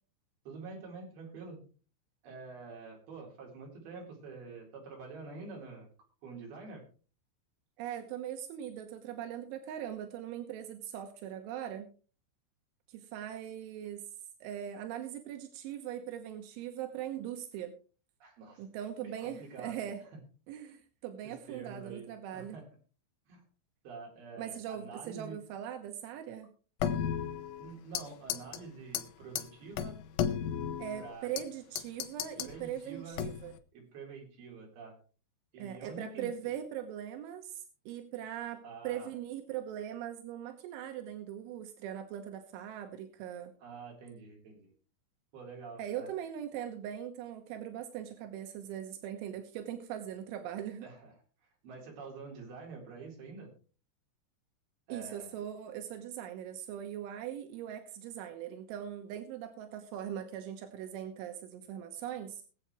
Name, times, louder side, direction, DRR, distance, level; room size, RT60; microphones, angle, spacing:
voice 1, 0.5-1.6 2.2-5.9 6.2-6.8 18.2-18.6 19.0-20.1 20.6-20.8 21.2-22.1 22.3-22.6 23.3-23.4 23.8-25.4 27.6-30.0 31.0-31.3 32.4-33.3 33.7-35.0 35.5-36.3 38.6-39.1 43.6-44.7 45.3-46.1 50.8-51.2 51.6-53.5 54.9-55.4, right 4 dB, 55° right, -1 dB, 5.7 m, -47 dB
voice 2, 7.8-11.9 12.9-14.0 14.4-17.7 18.6-20.0 20.5-22.6 24.4-26.5 30.8-33.5 35.6-43.5 45.8-50.9 54.9-62.4, right 10 dB, 85° right, 5 dB, 3.5 m, -40 dB
sound 1, 26.8-28.0 28.3-28.6 28.9-29.0 29.4-29.5 29.8-31.5 31.8-32.5 33.2-33.6, left 9 dB, 80° left, 3.2 m, -34 dB
22.0 x 8.0 x 3.2 m, 0.38 s
omnidirectional pair, 5.5 m